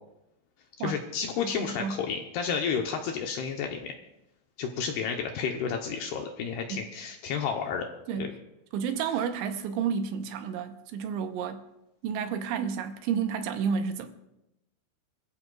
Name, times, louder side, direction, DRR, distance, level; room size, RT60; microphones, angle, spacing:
voice 1, 0.8-3.9 4.6-7.9 8.2-8.3, left 6 dB, 75° left, 2.5 m, -31 dB
voice 2, 1.4-2.0 6.7-6.8 8.1-8.3 8.7-11.6 12.0-14.1, right 7 dB, 80° right, 3.2 m, -31 dB
25.0 x 14.5 x 2.4 m
omnidirectional pair, 5.5 m